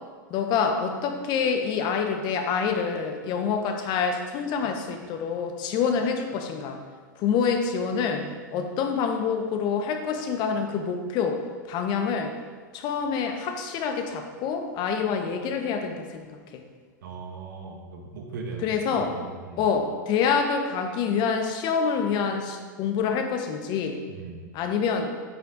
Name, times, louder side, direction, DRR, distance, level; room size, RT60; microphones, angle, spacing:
voice 1, 0.3-6.8 7.2-11.4 11.7-12.3 12.7-16.2 16.5-16.6 18.6-19.1 19.6-24.0 24.5-25.1, left 6 dB, 45° left, 5 dB, 1.0 m, -26 dB
voice 2, 17.0-19.7 24.1-24.5, right 4 dB, 75° right, 1 dB, 1.5 m, -39 dB
8.9 x 5.8 x 3.9 m, 1.5 s
hypercardioid pair, 105°, 10 cm